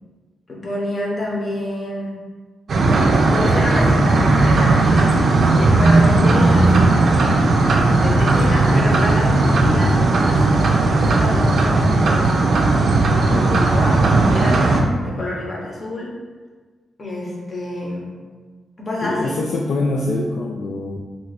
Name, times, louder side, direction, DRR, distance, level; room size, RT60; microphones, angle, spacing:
voice 1, 0.5-2.3 3.3-12.6 13.7-16.2 17.0-18.2 18.8-19.4, left 1 dB, 35° left, -3 dB, 0.8 m, -28 dB
sound 1, 2.7-14.8, right 2 dB, 55° right, 0.4 m, -16 dB
voice 2, 13.3-13.7 19.0-21.0, left 2 dB, 65° left, -1 dB, 0.3 m, -24 dB
2.5 x 2.4 x 4.0 m, 1.4 s
cardioid pair, 115°, 0 cm